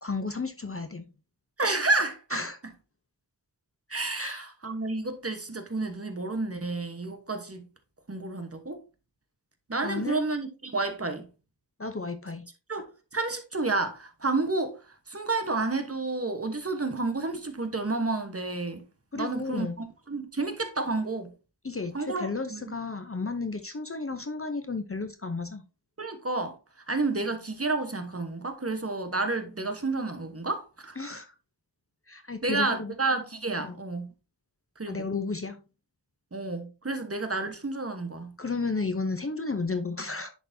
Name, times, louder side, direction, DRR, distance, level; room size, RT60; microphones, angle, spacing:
voice 1, 0.0-1.1 2.3-2.6 4.1-4.4 9.8-10.2 11.8-12.4 19.1-19.8 21.6-25.6 31.0-31.3 32.1-32.9 33.6-33.8 34.9-35.6 38.4-40.3, left 3 dB, 30° left, 0.7 m, -33 dB
voice 2, 1.6-2.4 3.9-7.7 8.1-8.8 9.7-11.3 12.7-18.9 19.1-21.3 21.9-22.7 26.0-26.6 26.9-31.0 32.4-34.1 34.8-35.1 36.3-38.3, right 3 dB, 30° right, 1.1 m, -30 dB
10.5 x 4.0 x 2.7 m
wide cardioid pair, 65°, 45 cm